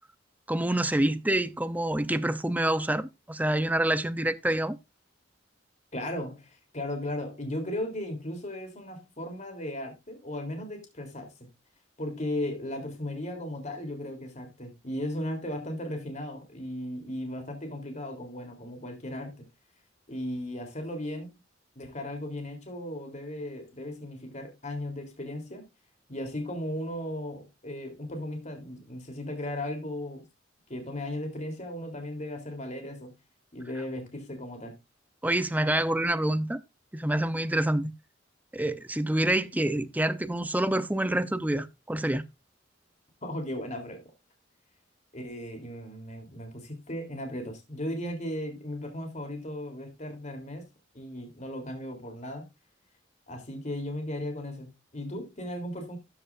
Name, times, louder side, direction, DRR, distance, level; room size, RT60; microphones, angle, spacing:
voice 1, 0.5-4.8 35.2-36.6 36.9-37.9 38.5-42.2, right 1 dB, 10° right, 0.6 m, -27 dB
voice 2, 5.9-11.5 12.0-19.5 20.1-21.4 21.8-25.7 26.1-30.2 30.7-33.2 33.5-34.8 43.2-44.0 45.1-50.6 50.9-52.5 53.3-56.0, left 1 dB, 40° left, 3.4 m, -36 dB
13.5 x 7.8 x 2.5 m
head